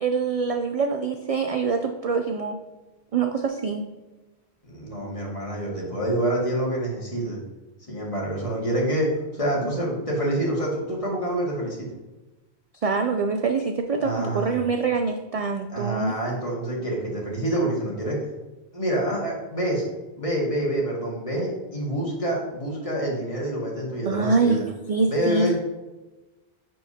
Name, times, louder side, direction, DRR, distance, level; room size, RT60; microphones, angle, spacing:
voice 1, 0.0-2.6 3.1-3.8 12.8-16.1 24.1-24.6 24.9-25.5, right 4 dB, 50° right, 5 dB, 0.4 m, -24 dB
voice 2, 4.6-7.4 7.9-12.0 14.0-14.5 15.7-18.2 18.7-19.8 20.2-24.6 25.1-25.5, right 1 dB, 35° left, -3 dB, 1.9 m, -27 dB
10.5 x 4.6 x 2.8 m, 1.1 s
omnidirectional pair, 1.1 m